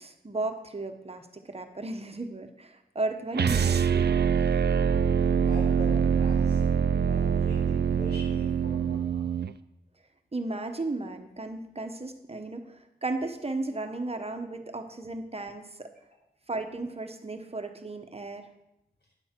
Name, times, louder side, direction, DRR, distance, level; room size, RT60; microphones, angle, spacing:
voice 1, 0.0-4.2 10.3-15.9 16.5-18.5, right 2 dB, 35° right, 6 dB, 1.0 m, -35 dB
sound 1, 3.3-9.5, right 7 dB, 80° right, 0.4 m, -24 dB
voice 2, 5.4-6.6 7.0-9.4, left 1 dB, 85° left, -3 dB, 5.1 m, -43 dB
12.5 x 9.8 x 4.5 m, 0.88 s
wide cardioid pair, 85°, 17 cm